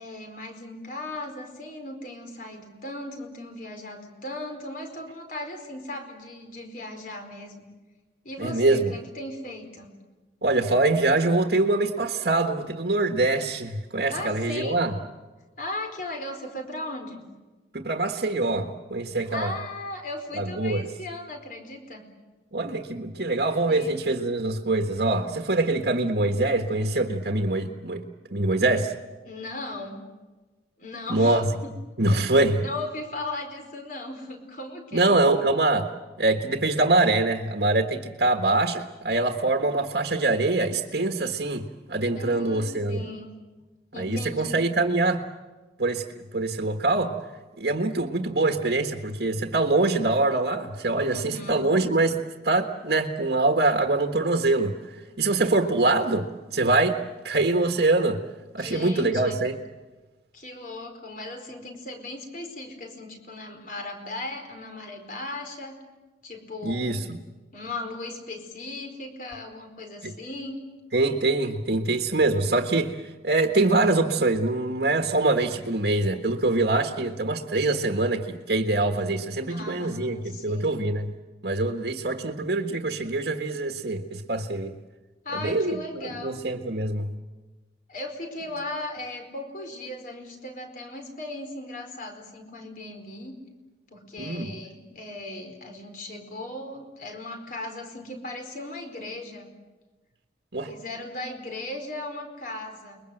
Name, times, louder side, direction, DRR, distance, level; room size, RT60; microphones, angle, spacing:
voice 1, 0.0-7.6 8.2-9.9 14.1-14.8 15.6-17.2 19.3-22.0 23.7-24.0 29.2-30.0 30.8-31.5 32.1-32.3 32.6-35.2 42.2-43.4 43.9-44.7 51.1-51.7 58.6-59.4 60.3-65.8 66.2-67.0 67.5-70.6 79.5-80.7 85.2-86.4 87.9-93.4 93.9-99.5 100.6-103.0, left 2 dB, 45° left, 4 dB, 4.5 m, -37 dB
voice 2, 8.4-8.9 10.4-14.9 17.7-19.5 20.3-20.8 22.5-28.0 28.3-28.9 31.1-31.5 32.0-32.6 34.9-35.9 36.2-43.0 44.0-45.2 45.8-46.0 46.3-47.2 47.6-52.2 52.4-58.2 58.5-59.6 66.6-67.2 70.0-70.1 70.9-81.1 81.4-84.8 85.3-87.1 94.2-94.5 100.5-100.7, right 2 dB, 65° right, 4 dB, 1.5 m, -24 dB
29.5 x 22.0 x 7.9 m, 1.2 s
head